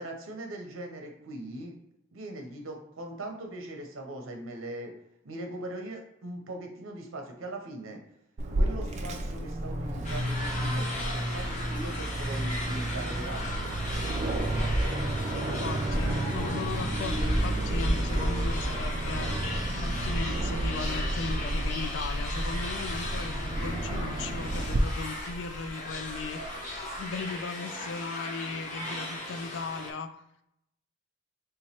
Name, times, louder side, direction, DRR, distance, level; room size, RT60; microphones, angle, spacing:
voice 1, 0.0-1.7 2.1-4.9 5.2-8.0 8.6-13.7, right 1 dB, 80° right, 3 dB, 0.7 m, -40 dB
Aircraft, 8.4-24.8, right 1 dB, 35° right, 0.4 m, -32 dB
sound 1, 10.0-29.9, left 1 dB, 35° left, 0.7 m, -38 dB
sound 2, 12.0-27.4, equal, ahead, 0.7 m, -36 dB
voice 2, 15.2-19.4 19.7-26.4 26.7-30.2, left 4 dB, 60° left, 9 dB, 0.3 m, -37 dB
3.4 x 3.0 x 2.9 m, 0.78 s
head